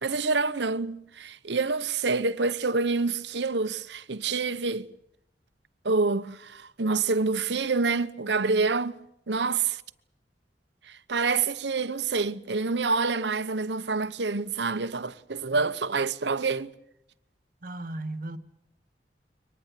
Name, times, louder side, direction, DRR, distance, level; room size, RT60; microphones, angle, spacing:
voice 1, 0.0-4.9 5.8-9.0 9.3-9.8 10.9-16.7, right 4 dB, 80° right, 1.0 m, -27 dB
voice 2, 17.6-18.4, right 2 dB, 50° right, 1.6 m, -35 dB
24.0 x 20.0 x 8.4 m
head